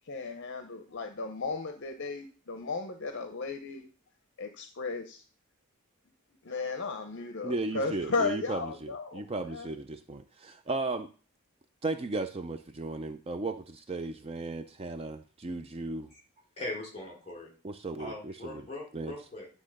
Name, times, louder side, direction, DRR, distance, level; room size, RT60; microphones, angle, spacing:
voice 1, 0.1-3.9 4.4-5.2 6.4-9.2 9.5-9.7, left 4 dB, 55° left, 6 dB, 0.7 m, -35 dB
voice 2, 7.4-11.1 11.8-16.1 17.6-18.6 18.9-19.1, right 2 dB, 25° right, 9 dB, 0.4 m, -35 dB
voice 3, 16.6-17.5 18.0-19.5, left 2 dB, 30° left, -1 dB, 3.4 m, -40 dB
9.9 x 3.8 x 6.4 m, 0.39 s
head